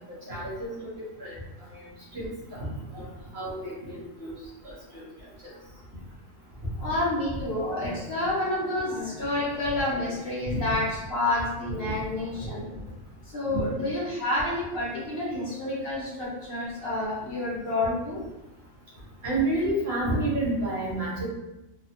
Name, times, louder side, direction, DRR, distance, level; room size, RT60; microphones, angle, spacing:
voice 1, 0.3-0.9 1.2-1.4 1.7-1.8 2.1-2.6 2.9-3.0 3.3-4.4 4.6-5.0 10.4-10.6 19.2-21.3, right 2 dB, 55° right, -7 dB, 1.3 m, -29 dB
voice 2, 6.7-12.7 13.3-18.2, left 2 dB, 50° left, -7 dB, 1.2 m, -29 dB
3.3 x 2.3 x 2.7 m, 0.97 s
omnidirectional pair, 1.3 m